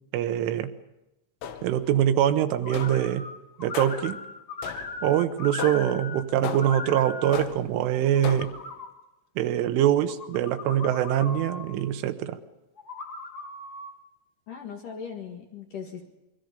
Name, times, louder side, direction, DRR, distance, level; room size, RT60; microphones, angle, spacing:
voice 1, 0.1-0.7 1.6-3.3 3.6-4.2 5.0-8.5 9.4-12.4, right 11 dB, 85° right, 9 dB, 3.5 m, -24 dB
sound 1, 1.4-1.9 2.7-3.2 3.7-4.2 4.6-5.1 5.6-6.0 6.4-6.9 7.3-7.8 8.2-8.7, left 8 dB, 85° left, 3.9 m, -36 dB
sound 2, 2.6-3.3 3.6-6.2 6.5-7.4 7.9-8.9 9.8-11.6 12.8-13.9, left 3 dB, 25° left, 2.2 m, -38 dB
voice 2, 14.5-16.1, left 6 dB, 55° left, 2 dB, 2.7 m, -38 dB
26.5 x 23.5 x 5.2 m, 0.95 s
omnidirectional pair, 5.6 m